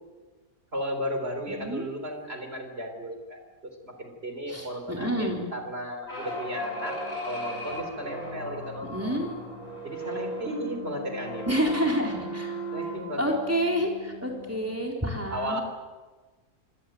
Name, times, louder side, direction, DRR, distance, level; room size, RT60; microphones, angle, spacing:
voice 1, 0.7-7.0 7.3-9.2 9.8-11.5 12.7-13.4 15.3-15.6, equal, 40° right, 6 dB, 4.0 m, -34 dB
voice 2, 4.5-5.5 8.9-9.3 11.5-12.5 13.2-15.6, equal, 10° right, 0 dB, 4.1 m, -28 dB
sound 1, 6.1-14.8, equal, 40° left, 6.3 m, -37 dB
25.0 x 17.5 x 9.2 m, 1.3 s
omnidirectional pair, 1.6 m